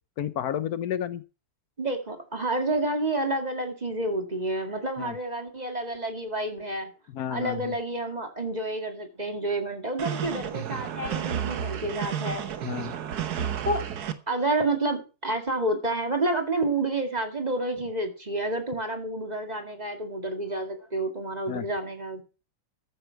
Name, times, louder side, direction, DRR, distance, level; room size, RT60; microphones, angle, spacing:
voice 1, 0.2-1.2 5.0-5.2 7.1-7.7 12.6-12.9 21.5-21.7, left 10 dB, 75° left, 14 dB, 1.3 m, -31 dB
voice 2, 1.8-6.9 7.3-12.5 12.8-12.9 13.6-13.8 14.3-22.2, right 2 dB, 25° right, 4 dB, 2.0 m, -29 dB
sound 1, 10.0-14.1, right 9 dB, 75° right, 1.6 m, -31 dB
14.0 x 10.5 x 4.6 m, 0.33 s
omnidirectional pair, 1.7 m